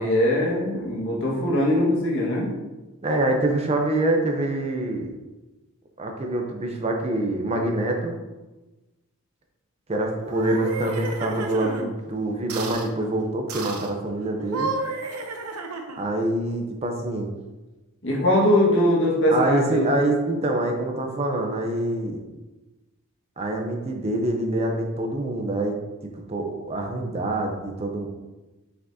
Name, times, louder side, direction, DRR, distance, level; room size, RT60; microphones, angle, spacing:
voice 1, 0.0-2.5 18.0-19.9, left 1 dB, 55° left, -3 dB, 1.6 m, -21 dB
voice 2, 3.0-5.2 6.0-8.2 9.9-14.7 16.0-17.3 19.3-22.2 23.4-28.1, right 1 dB, 30° right, 2 dB, 0.6 m, -25 dB
sound 1, 10.2-11.9 12.5-12.9 13.5-13.9 14.4-16.1, right 3 dB, 90° right, 0.7 m, -32 dB
6.1 x 5.8 x 2.7 m, 1.1 s
head